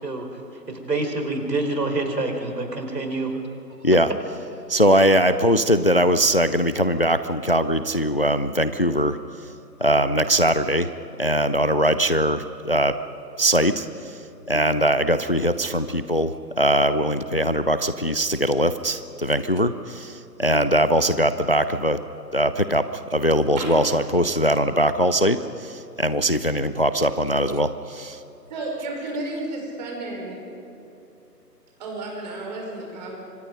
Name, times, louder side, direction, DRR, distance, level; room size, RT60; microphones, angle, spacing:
voice 1, 0.7-3.3, right 2 dB, 75° right, 4 dB, 4.9 m, -26 dB
voice 2, 4.7-9.2 9.8-10.9 11.2-12.9 13.4-14.2 14.5-22.0 22.3-28.2, equal, 35° left, 12 dB, 0.5 m, -21 dB
voice 3, 28.5-30.4 31.8-33.2, right 2 dB, 25° right, 0 dB, 5.2 m, -32 dB
28.0 x 25.0 x 5.3 m, 2.8 s
figure-of-eight pair, 155°, 50 cm